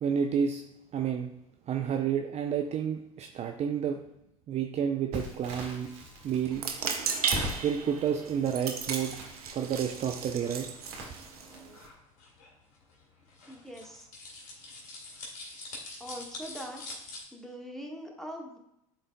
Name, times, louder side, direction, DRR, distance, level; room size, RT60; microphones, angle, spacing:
voice 1, 0.0-0.6 0.9-1.3 1.7-4.0 4.5-5.9 6.2-6.6 7.6-9.2 9.5-10.7, right 8 dB, 35° right, 4 dB, 0.6 m, -30 dB
Crackle, 5.1-11.9, right 1 dB, 65° right, 1.8 m, -42 dB
sound 1, 5.6-17.2, left 2 dB, 70° left, 2.0 m, -48 dB
sound 2, 6.5-11.9, right 6 dB, 85° right, 0.7 m, -35 dB
voice 2, 13.5-14.1 16.0-16.8 17.3-18.6, equal, ahead, 1 dB, 1.4 m, -42 dB
11.5 x 4.0 x 2.2 m, 0.82 s
hypercardioid pair, 75°, 18 cm